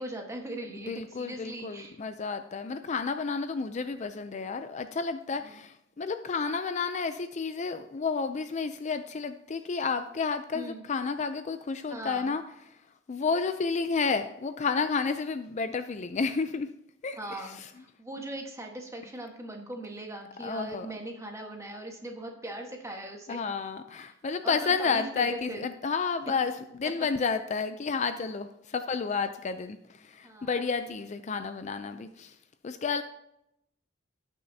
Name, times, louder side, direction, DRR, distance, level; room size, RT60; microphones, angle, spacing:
voice 1, 0.0-2.0 5.4-5.6 10.5-10.8 11.9-12.4 17.2-23.4 24.4-25.6 30.2-30.6, right 1 dB, 15° right, 2 dB, 1.4 m, -40 dB
voice 2, 0.7-12.4 13.1-16.7 17.0-17.7 20.4-20.9 23.3-32.4 32.6-33.0, left 5 dB, 35° left, 9 dB, 0.4 m, -31 dB
17.5 x 6.3 x 2.8 m, 0.80 s
head